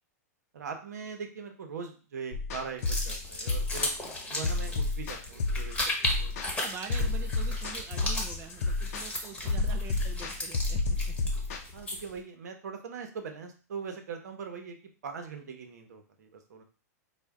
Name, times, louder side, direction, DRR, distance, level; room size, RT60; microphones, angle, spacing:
voice 1, 0.5-3.9 4.3-5.8 6.2-6.3 7.0-7.1 11.7-14.8 15.0-16.6, right 5 dB, 80° right, 5 dB, 0.8 m, -41 dB
sound 1, 2.3-11.6, left 3 dB, 65° left, 0.7 m, -30 dB
sound 2, 2.8-12.2, left 1 dB, 10° left, 1.0 m, -36 dB
voice 2, 6.6-11.1, right 8 dB, 30° right, 5 dB, 0.4 m, -44 dB
4.3 x 2.2 x 3.5 m, 0.37 s
hypercardioid pair, 120°, 9 cm